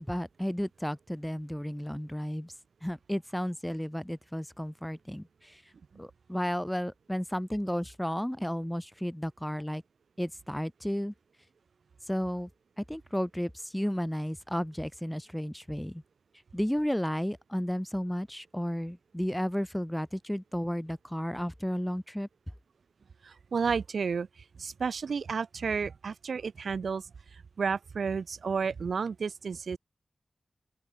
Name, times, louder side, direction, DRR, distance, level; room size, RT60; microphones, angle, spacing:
voice 1, 0.0-2.5 2.8-5.6 6.0-9.8 10.2-11.1 12.1-12.5 12.8-16.0 16.5-22.3, equal, 5° left, 1.9 m, -33 dB
voice 2, 23.2-29.8, right 5 dB, 85° right, 1.3 m, -32 dB
open air
cardioid pair, 45°, 0 cm